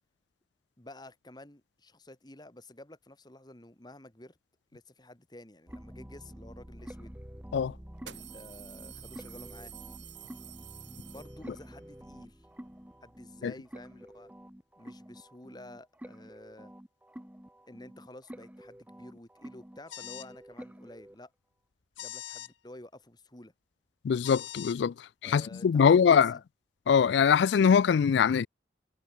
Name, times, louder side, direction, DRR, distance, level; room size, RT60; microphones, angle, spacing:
voice 1, 0.8-4.4 4.7-7.1 8.0-9.7 11.1-12.5 13.0-14.3 14.8-16.7 17.7-21.3 22.0-23.5 25.2-26.4, left 1 dB, 20° left, 1.9 m, -51 dB
sound 1, 5.7-21.1, equal, 10° right, 1.0 m, -48 dB
sound 2, 6.9-7.0 7.9-11.7, right 13 dB, 70° right, 3.2 m, -49 dB
sound 3, 19.9-20.3 22.0-22.5 24.2-24.8, left 12 dB, 80° left, 0.9 m, -42 dB
voice 2, 24.0-24.9 25.2-26.3 26.9-28.5, left 7 dB, 60° left, 0.3 m, -22 dB
head